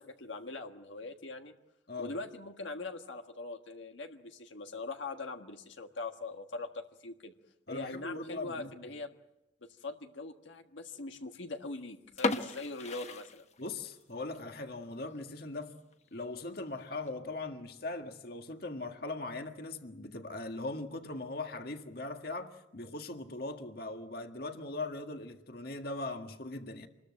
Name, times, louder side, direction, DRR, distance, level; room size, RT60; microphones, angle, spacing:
voice 1, 0.0-1.5 2.0-7.3 7.7-9.1 9.6-13.5, left 3 dB, 85° left, 1.6 m, -42 dB
voice 2, 7.7-8.7 13.6-15.7 16.1-26.9, left 2 dB, 55° left, 1.7 m, -40 dB
sound 1, 12.1-14.0 14.3-14.4 15.0-15.2 15.6-15.7 15.9-16.0 16.8-17.1, left 3 dB, 35° left, 1.2 m, -35 dB
27.0 x 21.0 x 7.6 m
head